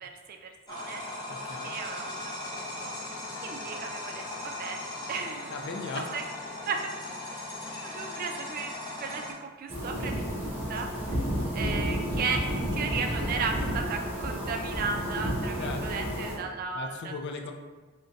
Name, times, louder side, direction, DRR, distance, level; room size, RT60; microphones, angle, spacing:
voice 1, 0.0-1.0 1.6-2.2 2.5-3.0 3.4-4.8 5.1-5.5 6.1-6.2 6.7-6.9 7.5-11.2 11.5-17.1, right 5 dB, 45° right, 4 dB, 0.3 m, -35 dB
sound 1, 0.7-9.3, left 1 dB, 20° left, 0.7 m, -38 dB
voice 2, 1.3-1.7 5.5-6.0 15.6-15.8 16.7-17.5, left 3 dB, 55° left, 4 dB, 0.4 m, -37 dB
Denver Sculpture Scottish Calf, 9.7-16.3, equal, 10° right, 1.2 m, -31 dB
3.7 x 2.2 x 3.9 m, 1.3 s
head